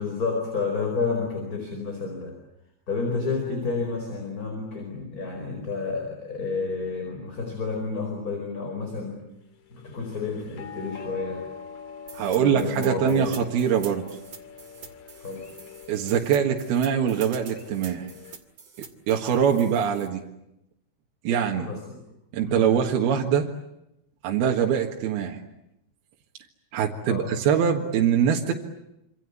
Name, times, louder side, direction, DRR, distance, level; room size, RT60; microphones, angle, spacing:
voice 1, 0.0-2.4 2.9-9.2 9.7-11.5 12.3-13.3 15.2-15.5 21.6-22.0 22.4-22.7 27.1-27.3, left 4 dB, 20° left, 3 dB, 5.0 m, -30 dB
sound 1, 9.5-18.4, left 7 dB, 50° left, 2.6 m, -44 dB
sound 2, 12.1-20.1, right 6 dB, 45° right, 3.1 m, -45 dB
voice 2, 12.1-14.1 15.9-18.1 18.8-20.2 21.2-21.7 22.3-23.5 24.2-25.4 26.7-28.5, right 8 dB, 75° right, 1 dB, 3.6 m, -23 dB
26.5 x 26.5 x 8.3 m, 0.83 s
omnidirectional pair, 4.5 m